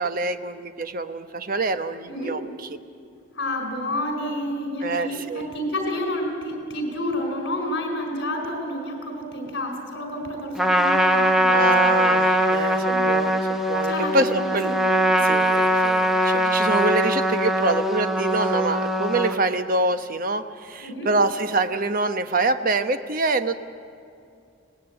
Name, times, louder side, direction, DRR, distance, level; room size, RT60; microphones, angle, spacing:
voice 1, 0.0-2.7 4.8-5.5 11.5-14.8 15.2-23.5, right 2 dB, 45° right, 9 dB, 1.0 m, -25 dB
voice 2, 3.3-12.0 12.9-13.1 13.8-14.8 15.1-15.3 16.3-16.6 20.8-21.1, left 1 dB, 60° left, 3 dB, 4.6 m, -30 dB
Trumpet, 10.6-19.4, equal, ahead, 1.0 m, -21 dB
24.0 x 18.5 x 8.8 m, 2.5 s
head